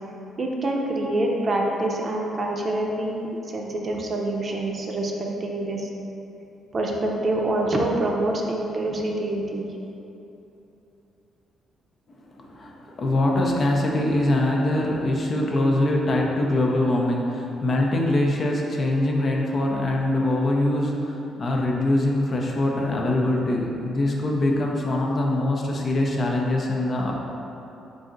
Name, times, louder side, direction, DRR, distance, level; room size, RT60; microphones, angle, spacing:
voice 1, 0.4-3.3 3.5-5.1 5.4-5.9 6.7-9.7, right 1 dB, 40° right, 0 dB, 0.5 m, -26 dB
voice 2, 12.4-27.1, left 1 dB, 45° left, -1 dB, 0.5 m, -23 dB
4.0 x 2.6 x 3.8 m, 2.9 s
cardioid pair, 90°, 0 cm